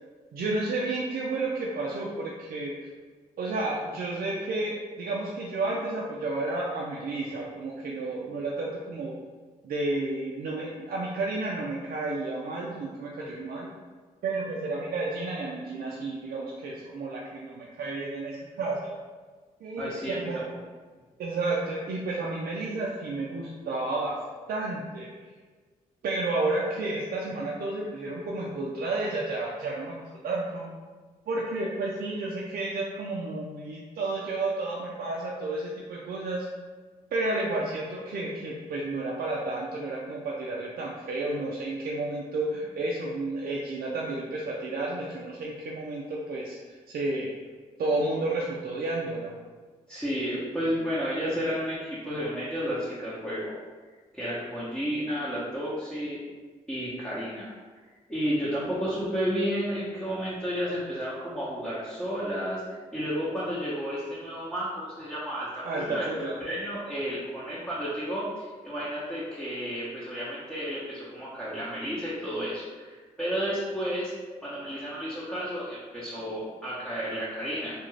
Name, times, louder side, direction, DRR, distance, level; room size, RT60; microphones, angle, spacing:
voice 1, 0.3-2.7 3.4-9.2 9.6-13.7 14.2-19.0 19.6-20.4 21.2-24.2 24.5-25.1 26.0-30.7 31.3-36.5 37.1-47.3 47.8-49.3 65.6-66.4, right 2 dB, 70° right, -4 dB, 0.4 m, -31 dB
voice 2, 19.8-20.3 49.9-53.5 54.1-56.2 56.7-57.5 58.1-74.1 74.4-77.9, equal, 5° left, -9 dB, 0.9 m, -32 dB
2.4 x 2.3 x 3.1 m, 1.4 s
supercardioid pair, 55°, 16 cm